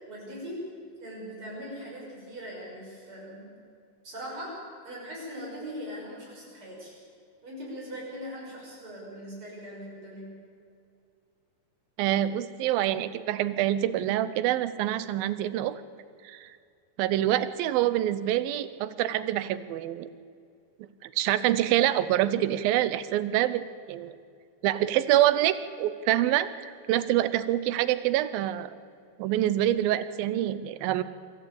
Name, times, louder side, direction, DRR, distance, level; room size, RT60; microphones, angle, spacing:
voice 1, 0.1-0.6 1.0-3.5 4.0-4.5 4.8-7.0 7.4-10.3, equal, 35° right, -4 dB, 7.3 m, -40 dB
voice 2, 12.0-15.8 16.2-16.5 17.0-20.1 21.0-24.2 24.6-28.7 29.2-31.0, right 13 dB, 90° right, 14 dB, 2.6 m, -26 dB
24.5 x 14.0 x 8.8 m, 2.3 s
omnidirectional pair, 4.1 m